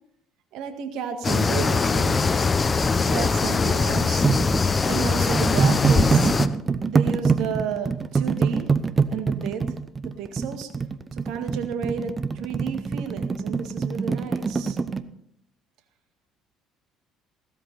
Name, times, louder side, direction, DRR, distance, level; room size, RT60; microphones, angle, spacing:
voice 1, 0.5-2.3 3.0-4.3 4.9-6.3 6.8-8.7 9.1-9.8 10.0-10.7 11.2-14.8, right 7 dB, 65° right, 7 dB, 1.9 m, -32 dB
sound 1, 1.2-6.5, left 4 dB, 30° left, 0.9 m, -22 dB
sound 2, 4.2-15.0, right 5 dB, 30° right, 0.9 m, -24 dB
17.0 x 13.0 x 4.2 m, 0.71 s
hypercardioid pair, 55°, 0 cm